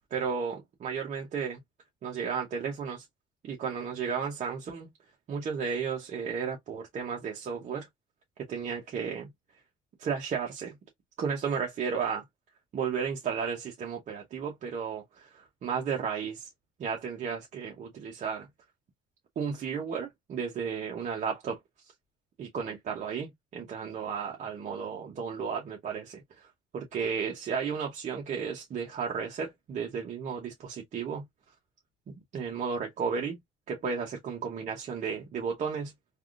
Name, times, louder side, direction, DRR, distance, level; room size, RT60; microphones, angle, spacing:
voice 1, 0.1-1.6 2.0-3.0 3.4-4.9 5.3-7.9 8.5-9.3 10.0-10.7 11.2-12.2 12.7-16.5 16.8-18.5 19.4-21.6 22.4-26.5 26.7-31.2 32.1-33.4 33.7-35.9, right 6 dB, 45° right, 0.9 m, -33 dB
3.4 x 2.4 x 2.4 m
cardioid pair, 110°, 17 cm